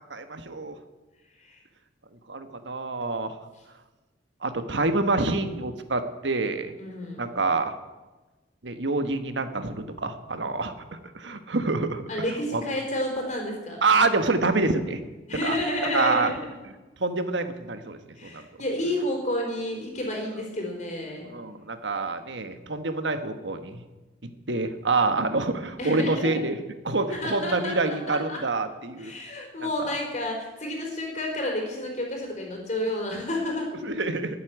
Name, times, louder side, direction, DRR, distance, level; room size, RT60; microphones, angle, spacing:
voice 1, 0.1-0.7 2.3-3.3 4.4-6.7 7.2-7.7 8.6-10.7 11.1-12.0 12.5-12.6 13.8-15.0 15.4-15.6 15.9-16.3 17.0-18.4 21.3-23.8 24.2-26.6 26.8-29.1 33.8-34.4, right 3 dB, 75° right, 9 dB, 1.3 m, -26 dB
voice 2, 6.8-7.3 12.1-13.9 15.3-16.5 18.2-21.3 25.8-26.4 27.1-28.4 29.0-33.7, left 1 dB, 40° left, 1 dB, 4.2 m, -30 dB
12.5 x 8.6 x 10.0 m, 1.2 s
head